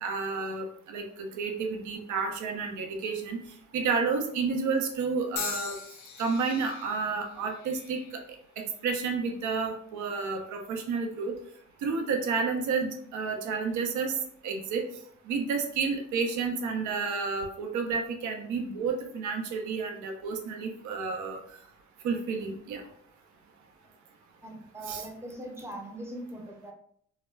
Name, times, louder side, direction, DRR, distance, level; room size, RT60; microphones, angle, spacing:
voice 1, 0.0-3.4 3.7-5.7 6.2-8.0 8.8-11.3 11.8-14.1 14.4-14.8 15.3-21.4 22.0-22.8 24.9-25.0, right 5 dB, 75° right, 3 dB, 0.6 m, -30 dB
sound 1, 5.4-9.5 10.2-10.6 11.6-11.8, left 7 dB, 65° left, 0.5 m, -42 dB
voice 2, 24.4-26.7, right 1 dB, 10° right, 1 dB, 0.5 m, -41 dB
2.1 x 2.0 x 3.2 m, 0.65 s
cardioid pair, 90°, 30 cm